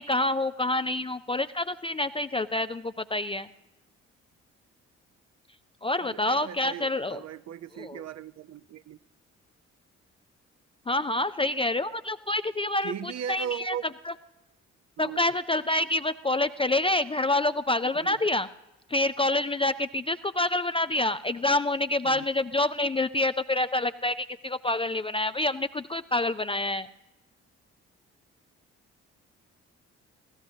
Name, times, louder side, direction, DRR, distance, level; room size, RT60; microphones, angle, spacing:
voice 1, 0.0-3.5 5.8-7.2 7.8-8.0 10.9-13.7 14.1-14.2 15.0-18.5 18.9-26.9, left 2 dB, 15° left, 11 dB, 0.4 m, -27 dB
voice 2, 6.0-9.0 12.8-13.8 15.0-15.2 18.0-18.2 22.0-22.3, right 9 dB, 45° right, 13 dB, 0.7 m, -38 dB
20.5 x 15.5 x 2.7 m, 0.98 s
hypercardioid pair, 40°, 36 cm